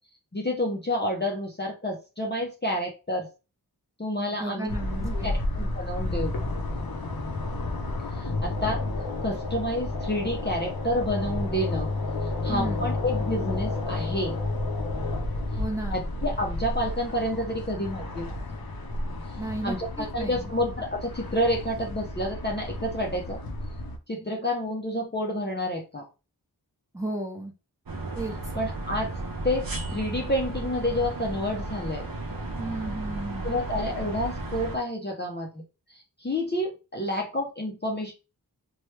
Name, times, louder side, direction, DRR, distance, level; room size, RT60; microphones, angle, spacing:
voice 1, 0.3-3.3 4.0-4.7 5.0-6.3 8.1-8.8 9.2-11.9 12.4-14.4 15.9-18.3 19.3-19.4 19.6-23.4 24.1-26.1 28.5-29.1 29.4-32.1 33.4-35.6 35.9-38.1, left 1 dB, 25° left, 0 dB, 0.6 m, -29 dB
voice 2, 4.3-5.3 12.5-12.9 15.6-16.1 19.4-20.5 26.9-27.5 28.2-28.4 32.6-33.5, right 2 dB, 10° right, 1 dB, 0.8 m, -34 dB
sound 1, 4.7-24.0, left 2 dB, 65° left, 0.7 m, -31 dB
sound 2, 27.9-34.8, right 2 dB, 60° right, 0.8 m, -34 dB
3.1 x 2.2 x 3.1 m, 0.30 s
wide cardioid pair, 45°, 39 cm